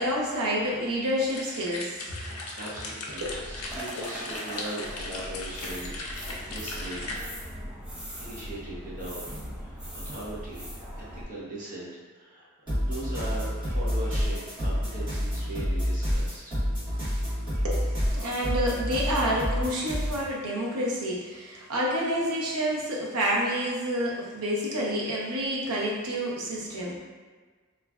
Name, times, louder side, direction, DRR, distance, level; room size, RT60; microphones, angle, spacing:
voice 1, 0.0-2.2 3.2-3.3 17.6-27.0, equal, 75° right, -4 dB, 0.7 m, -29 dB
sound 1, 1.3-7.2, left 2 dB, 75° left, 0.5 m, -38 dB
voice 2, 2.4-7.2 8.2-10.6 11.0-12.5 12.7-16.5 16.9-17.3, right 1 dB, 35° right, -7 dB, 0.8 m, -40 dB
sound 2, 3.2-11.2, equal, 5° right, 0.3 m, -40 dB
sound 3, 12.7-20.3, equal, 20° right, 1.4 m, -28 dB
3.1 x 2.4 x 2.3 m, 1.5 s
head